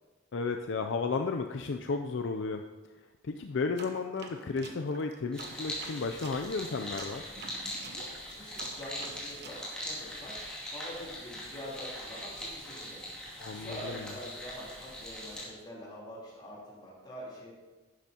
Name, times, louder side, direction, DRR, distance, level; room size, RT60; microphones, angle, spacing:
voice 1, 0.3-2.6 3.2-7.3 13.4-14.0, left 4 dB, 60° left, 5 dB, 0.4 m, -33 dB
sound 1, 3.8-6.4 7.0-9.6, right 3 dB, 55° right, 1.0 m, -47 dB
sound 2, 5.3-15.4, equal, 5° left, 2.4 m, -41 dB
voice 2, 8.3-10.4 10.7-13.0 13.5-17.5, equal, 20° left, -6 dB, 3.5 m, -45 dB
11.5 x 10.5 x 2.9 m, 1.3 s
head